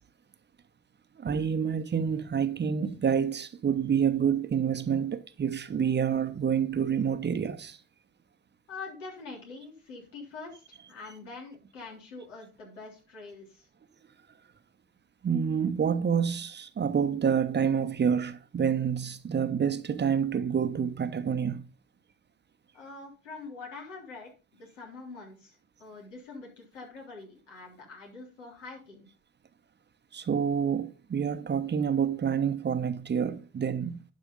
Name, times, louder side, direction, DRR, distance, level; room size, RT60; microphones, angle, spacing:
voice 1, 1.2-7.8 15.2-21.6 30.1-34.0, right 7 dB, 30° right, 1.0 m, -28 dB
voice 2, 8.7-10.6 10.9-13.7 22.7-29.1, left 3 dB, 90° left, 3.5 m, -45 dB
11.5 x 4.8 x 5.3 m
hypercardioid pair, 70°, 35 cm